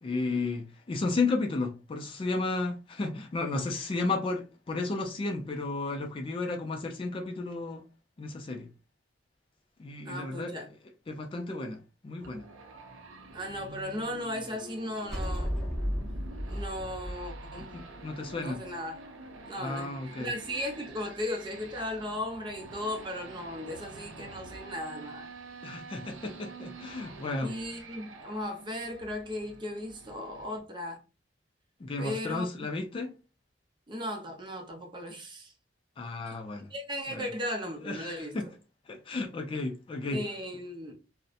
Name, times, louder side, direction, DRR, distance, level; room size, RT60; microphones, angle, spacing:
voice 1, 0.0-7.8 8.2-8.7 9.8-10.5 11.1-12.4 17.7-18.6 19.6-20.3 25.6-27.5 31.8-33.1 36.0-36.7 37.1-37.3 37.8-38.5 38.9-40.2, left 3 dB, 30° left, 0.3 m, -33 dB
voice 2, 10.0-10.7 13.3-15.6 16.5-17.7 18.4-19.0 19.5-25.3 27.4-31.0 32.0-32.5 33.9-35.5 36.7-38.5 40.1-40.9, left 1 dB, 25° right, 0.6 m, -36 dB
sound 1, 12.2-30.6, right 3 dB, 85° right, 0.5 m, -48 dB
sound 2, 15.1-18.5, equal, 5° left, 0.8 m, -34 dB
2.7 x 2.1 x 2.4 m
head